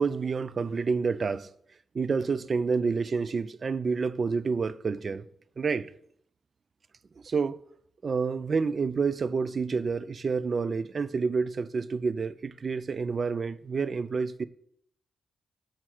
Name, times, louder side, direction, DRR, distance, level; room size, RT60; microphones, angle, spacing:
voice 1, 0.0-1.5 1.9-5.2 5.6-5.9 7.2-7.6 8.0-14.4, right 5 dB, 50° right, 0.3 m, -28 dB
6.3 x 4.3 x 6.0 m
cardioid pair, 70°, 0 cm